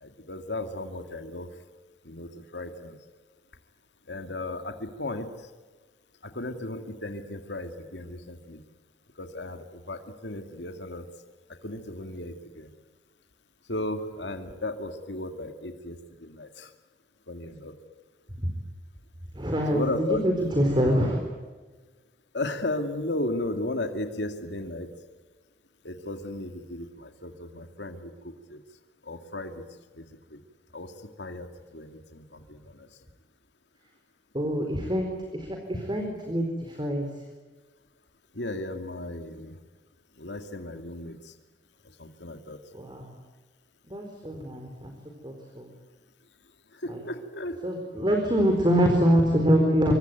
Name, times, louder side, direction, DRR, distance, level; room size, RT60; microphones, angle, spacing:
voice 1, 0.0-1.5 2.0-3.0 4.1-5.5 6.2-8.6 9.2-11.1 11.6-12.7 13.7-16.7 17.3-17.7 19.7-20.5 22.3-24.9 25.8-28.6 29.0-29.6 30.0-30.4 30.7-30.9 31.2-31.5 31.7-32.9 38.3-39.6 40.2-41.3 42.0-42.6 46.7-47.6, left 2 dB, 75° left, 6 dB, 2.3 m, -35 dB
voice 2, 19.4-21.2 34.3-37.1 42.7-43.1 43.9-44.9 45.2-45.7 46.9-47.0 47.6-49.9, equal, 25° right, 3 dB, 4.2 m, -25 dB
26.5 x 24.0 x 9.3 m, 1.3 s
head